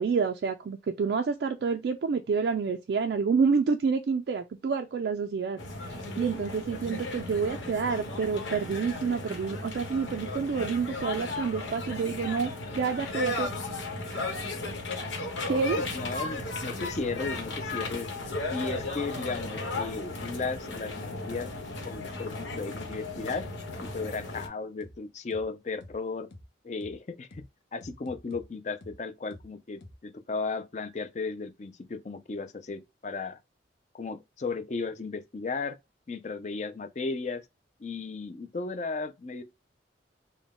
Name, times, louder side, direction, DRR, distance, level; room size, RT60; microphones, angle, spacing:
voice 1, 0.0-13.5 14.1-14.3 14.9-15.1 15.4-15.8, right 5 dB, 65° right, 0.3 m, -28 dB
sound 1, 5.6-24.5, left 2 dB, 90° left, 1.2 m, -35 dB
voice 2, 15.8-18.1 18.5-21.5 21.8-23.5 23.9-26.3 26.6-27.5 27.7-33.4 33.9-35.8 36.1-37.4 37.8-39.4, left 4 dB, 40° left, 0.4 m, -35 dB
sound 2, 16.3-16.4 16.8-16.9 17.3-17.4 17.8-17.9 18.3-18.4 18.8-18.9 19.3-19.4 19.8-20.4 20.8-20.9 21.3-21.4 21.8-21.9 22.3-22.4 22.8-22.9 23.3-24.4 24.8-24.9 25.3-25.4 25.8-25.9 26.3-26.4 26.8-26.9 27.3-27.4 27.8-28.4 28.8-28.9 29.3-29.4 29.8-29.9, left 1 dB, 70° left, 0.7 m, -48 dB
3.7 x 2.2 x 3.5 m
head